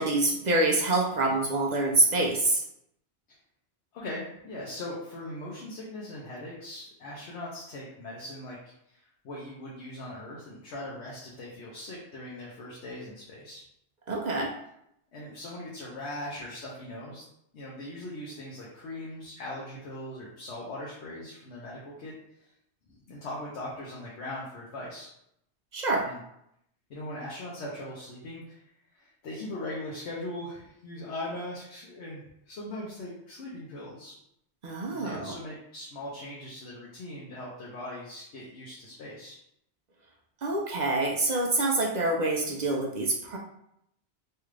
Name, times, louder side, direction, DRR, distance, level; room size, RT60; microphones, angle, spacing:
voice 1, 0.0-2.6 14.1-14.5 25.7-26.0 34.6-35.3 40.4-43.4, right 2 dB, 55° right, -1 dB, 0.5 m, -26 dB
voice 2, 3.9-13.6 15.1-17.2 17.5-22.1 22.4-22.5 22.9-25.1 26.0-26.2 26.9-28.6 28.9-34.1 34.9-39.3, left 1 dB, 90° left, -5 dB, 1.0 m, -40 dB
3.2 x 2.4 x 3.1 m, 0.76 s
omnidirectional pair, 1.1 m